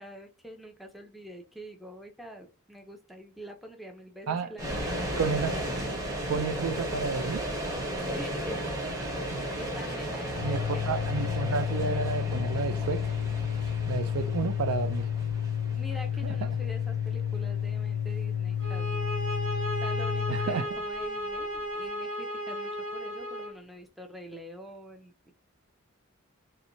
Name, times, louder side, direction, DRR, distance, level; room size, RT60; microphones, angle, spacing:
voice 1, 0.0-5.2 8.0-8.7 9.1-10.8 15.7-19.1 19.8-25.3, right 1 dB, ahead, 0.4 m, -45 dB
sound 1, 4.6-21.6, equal, 15° right, 0.8 m, -35 dB
voice 2, 5.2-5.6 6.3-7.5 9.3-9.5 10.4-13.0 13.9-15.1 16.2-16.4 20.3-20.7, right 5 dB, 85° right, 0.4 m, -31 dB
Organ, 10.3-20.6, left 8 dB, 75° left, 0.3 m, -31 dB
sound 2, 18.6-23.6, equal, 65° right, 0.9 m, -34 dB
2.8 x 2.1 x 2.5 m
head